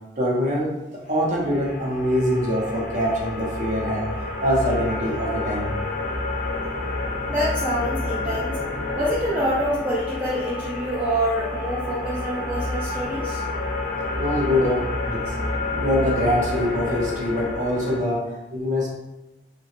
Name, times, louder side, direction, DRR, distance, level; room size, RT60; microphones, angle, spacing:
voice 1, 0.2-0.8 1.1-4.1 4.4-5.7 14.2-15.3 15.7-18.9, equal, 40° right, -4 dB, 0.7 m, -24 dB
sound 1, 1.2-18.0, left 2 dB, 45° left, 0.5 m, -29 dB
voice 2, 7.3-8.6 8.9-13.4, equal, 10° right, -9 dB, 0.4 m, -26 dB
2.8 x 2.2 x 2.9 m, 0.97 s
head